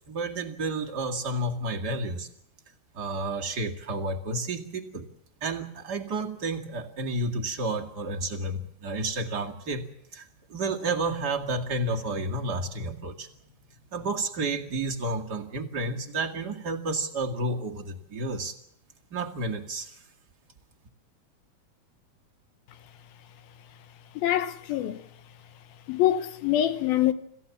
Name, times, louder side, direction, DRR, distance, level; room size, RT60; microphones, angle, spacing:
voice 1, 0.1-2.3 2.9-5.1 5.4-9.8 10.1-13.3 13.9-18.6 19.1-20.0, right 2 dB, 35° right, 1.9 m, -31 dB
voice 2, 24.2-25.0 25.9-27.1, left 12 dB, 75° left, 2.7 m, -25 dB
27.0 x 16.0 x 7.2 m
omnidirectional pair, 4.5 m